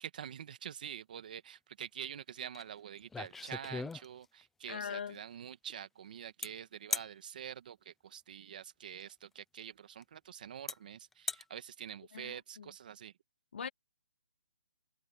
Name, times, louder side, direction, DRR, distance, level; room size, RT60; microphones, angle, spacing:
voice 1, 0.0-13.1, right 9 dB, 35° right, 1.6 m, -46 dB
sound 1, 2.5-2.7 3.0-4.4 6.4-6.5 6.9-7.1 9.0-9.1 10.0-10.1 10.7-10.8 11.1-11.4, left 4 dB, 5° left, 0.5 m, -38 dB
voice 2, 4.7-5.2 12.1-12.7 13.5-13.7, left 7 dB, 55° left, 2.0 m, -41 dB
hypercardioid pair, 170°, 7 cm